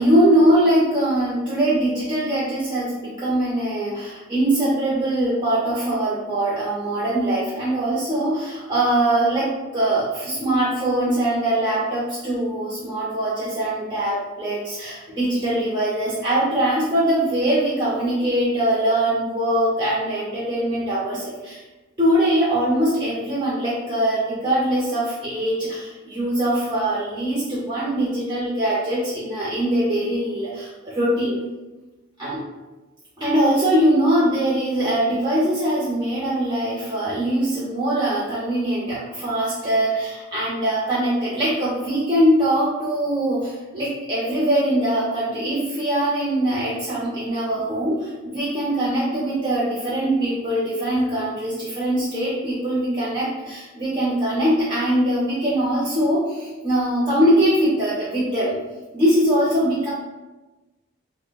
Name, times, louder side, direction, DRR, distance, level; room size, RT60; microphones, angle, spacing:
voice 1, 0.0-21.6 22.0-31.4 32.2-32.4 33.2-58.6 58.9-59.9, right 1 dB, 20° right, -9 dB, 0.6 m, -22 dB
5.4 x 2.1 x 2.3 m, 1.1 s
head